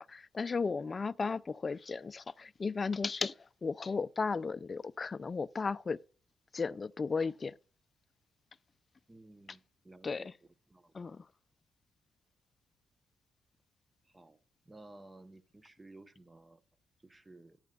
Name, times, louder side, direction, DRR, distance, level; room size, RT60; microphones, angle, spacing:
voice 1, 0.0-6.0 6.5-7.5 10.0-10.4 10.9-11.3, left 4 dB, 30° left, 0.4 m, -35 dB
voice 2, 9.1-10.3 10.7-10.9 14.1-14.4 14.7-16.6 17.0-17.6, right 2 dB, 15° right, 0.8 m, -55 dB
14.5 x 8.9 x 2.4 m
cardioid pair, 115°, 0 cm